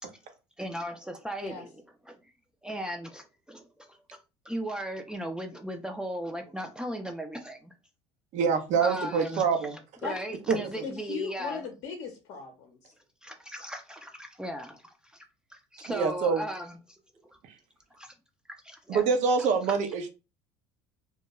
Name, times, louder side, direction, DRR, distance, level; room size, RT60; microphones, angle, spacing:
voice 1, 0.6-1.7 2.1-2.2 2.6-4.2 4.4-7.7 8.8-9.4 10.0-11.6 13.2-17.0 17.9-18.1 18.6-19.0, equal, 5° right, 0.4 m, -37 dB
voice 2, 8.3-9.8 10.5-10.6 15.9-16.4 17.4-17.5 18.9-20.1, right 5 dB, 55° right, 0.6 m, -25 dB
voice 3, 10.8-12.9, left 6 dB, 60° left, 0.6 m, -38 dB
2.3 x 2.2 x 2.9 m
hypercardioid pair, 80°, 14 cm